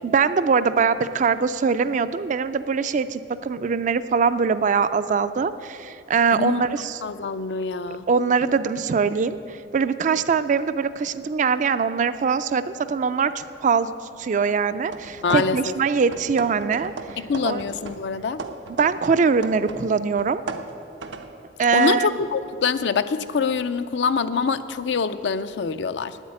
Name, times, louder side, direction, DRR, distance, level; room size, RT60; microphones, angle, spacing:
voice 1, 0.0-7.0 8.1-13.9 14.2-17.6 18.8-20.4 21.6-22.1, right 5 dB, 45° right, 12 dB, 0.4 m, -22 dB
voice 2, 6.3-6.6 7.0-8.0 15.2-15.7 17.3-18.4 21.7-26.2, left 5 dB, 70° left, 12 dB, 0.5 m, -25 dB
Before centrifuging, 14.9-15.9 16.1-19.9 20.2-21.3, right 3 dB, 85° right, 0.7 m, -36 dB
9.5 x 8.2 x 8.6 m, 2.6 s
head